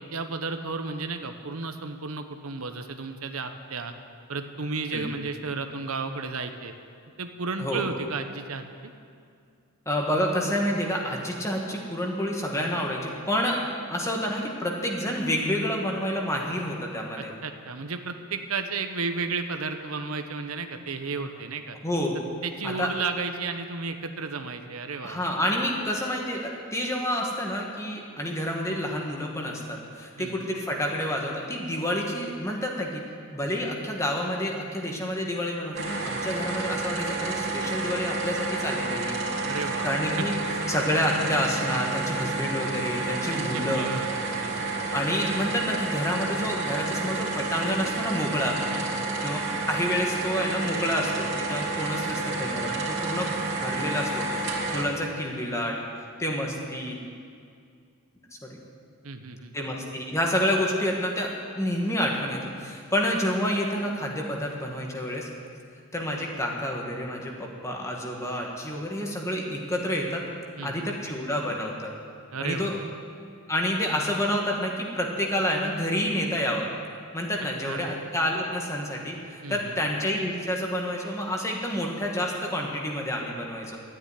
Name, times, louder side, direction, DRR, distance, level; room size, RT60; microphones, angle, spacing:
voice 1, 0.0-3.9 4.3-6.7 7.2-8.9 17.2-21.8 22.4-25.3 30.2-30.5 39.4-40.5 43.3-44.9 48.7-49.1 59.0-59.5 70.6-70.9 72.3-72.8 77.6-77.8 79.4-79.8, right 4 dB, 80° right, 7 dB, 1.0 m, -33 dB
voice 2, 9.9-13.6 13.9-17.3 21.8-22.2 22.6-22.9 25.0-33.0 33.3-39.2 39.8-40.3 40.7-43.9 44.9-48.6 49.2-49.4 49.7-55.8 56.2-57.0 58.4-58.6 59.5-61.3 61.6-65.3 65.9-70.2 70.6-71.9 72.4-72.8 73.5-76.7 77.1-83.8, equal, 15° left, 0 dB, 1.8 m, -28 dB
sound 1, 35.7-54.8, right 3 dB, 55° right, 2.7 m, -30 dB
13.0 x 9.1 x 9.7 m, 2.3 s
head